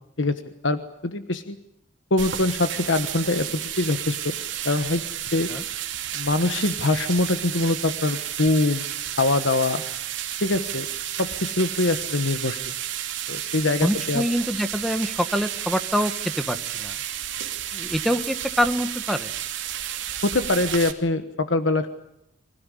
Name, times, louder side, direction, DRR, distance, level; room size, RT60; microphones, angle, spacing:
voice 1, 0.2-1.6 2.1-4.3 4.6-5.0 5.3-5.5 6.1-8.9 9.2-9.8 10.4-10.9 11.2-12.6 13.3-14.2 20.2-21.9, left 2 dB, 90° left, 9 dB, 1.2 m, -23 dB
sound 1, 2.2-20.9, right 11 dB, 85° right, 2.8 m, -32 dB
voice 2, 13.8-17.0 17.7-19.3, equal, ahead, 10 dB, 1.3 m, -25 dB
25.5 x 16.5 x 9.9 m, 0.80 s
head